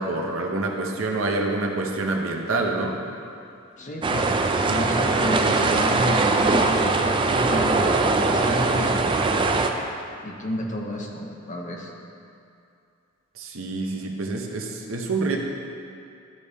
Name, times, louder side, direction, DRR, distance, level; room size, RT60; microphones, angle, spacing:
voice 1, 0.0-3.0 13.4-15.4, right 3 dB, 70° right, 1 dB, 0.8 m, -27 dB
voice 2, 3.8-4.3 4.6-9.2 10.2-11.9, equal, 35° left, 0 dB, 0.8 m, -30 dB
sound 1, 4.0-9.7, right 3 dB, 25° right, 0.4 m, -21 dB
12.5 x 4.2 x 3.4 m, 2.5 s
head